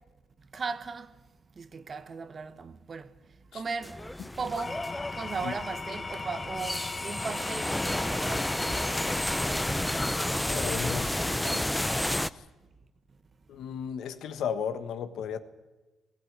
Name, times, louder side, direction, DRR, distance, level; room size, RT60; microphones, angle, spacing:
voice 1, 0.5-1.1 1.6-3.1 3.5-4.0 4.4-4.8 5.1-8.7, right 4 dB, 40° right, 1.4 m, -37 dB
sound 1, 3.8-12.3, left 1 dB, 5° left, 0.6 m, -31 dB
Engine / Tools, 4.4-10.9, left 4 dB, 30° left, 1.1 m, -39 dB
voice 2, 10.4-11.7 12.3-12.4 13.5-15.4, left 7 dB, 75° left, 1.4 m, -35 dB
19.5 x 16.0 x 9.5 m
cardioid pair, 90°, 0 cm